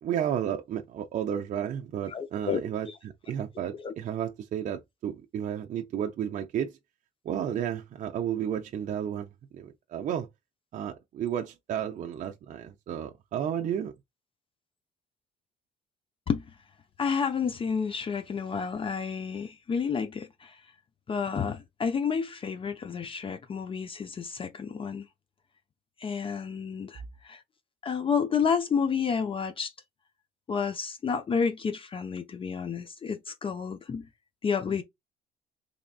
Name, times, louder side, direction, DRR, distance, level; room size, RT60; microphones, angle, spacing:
voice 1, 0.0-2.9 3.3-6.8 7.2-9.3 9.5-10.3 10.7-13.9, right 9 dB, 50° right, 0.5 m, -32 dB
voice 2, 2.1-2.6 3.8-3.9 16.3-16.4 17.0-20.6 21.1-25.1 26.0-27.4 27.8-29.7 30.5-34.1 34.4-34.8, left 6 dB, 30° left, 0.6 m, -30 dB
3.8 x 3.4 x 2.4 m
cardioid pair, 110°, 17 cm